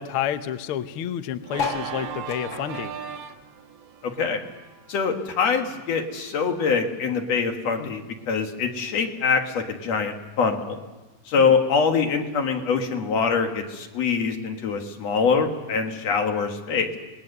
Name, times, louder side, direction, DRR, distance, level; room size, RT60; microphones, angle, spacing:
voice 1, 0.0-2.9 11.3-11.5, left 10 dB, 75° left, 10 dB, 1.3 m, -30 dB
Organ, 1.4-6.3, right 8 dB, 60° right, 2.0 m, -38 dB
sound 1, 1.5-4.3 4.6-6.1 6.6-6.7 6.9-7.0 7.2-7.6 8.4-8.5, left 5 dB, 40° left, 2.4 m, -35 dB
voice 2, 4.0-4.4 4.9-10.8 11.3-17.0, left 5 dB, 55° left, 4 dB, 2.6 m, -24 dB
26.5 x 20.5 x 6.7 m, 1.2 s
omnidirectional pair, 3.7 m